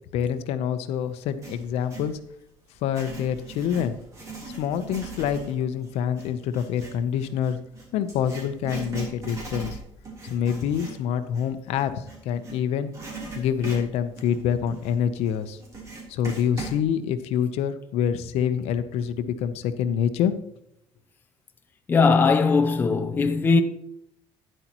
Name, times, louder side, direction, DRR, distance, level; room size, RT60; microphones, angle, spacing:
voice 1, 0.1-2.2 2.8-4.0 4.6-7.6 7.9-9.8 10.2-12.9 13.4-15.6 16.1-20.3, left 8 dB, 75° left, 0.8 m, -26 dB
Writing, 1.2-2.1 2.7-12.6 12.9-16.8, right 3 dB, 30° right, 3.4 m, -39 dB
voice 2, 21.9-23.6, left 4 dB, 20° left, 0.6 m, -19 dB
12.0 x 10.0 x 3.0 m
cardioid pair, 170°, 11 cm